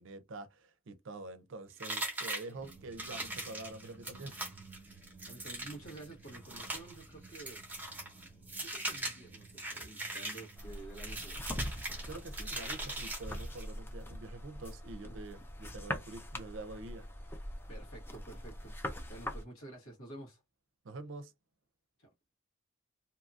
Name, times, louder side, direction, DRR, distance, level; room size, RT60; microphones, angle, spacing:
voice 1, 0.0-4.4 12.0-17.1 20.8-21.3, right 2 dB, 65° right, 0.5 m, -46 dB
sound 1, 1.8-13.7, right 2 dB, 10° right, 0.8 m, -41 dB
sound 2, 2.5-14.1, right 3 dB, 30° left, 1.2 m, -57 dB
voice 2, 5.2-7.6 8.5-11.4 15.1-15.2 17.7-18.7 19.1-20.4 22.0-22.1, right 2 dB, 85° left, 1.4 m, -50 dB
sound 3, 10.6-19.4, left 1 dB, 10° left, 0.3 m, -42 dB
2.7 x 2.6 x 2.3 m
head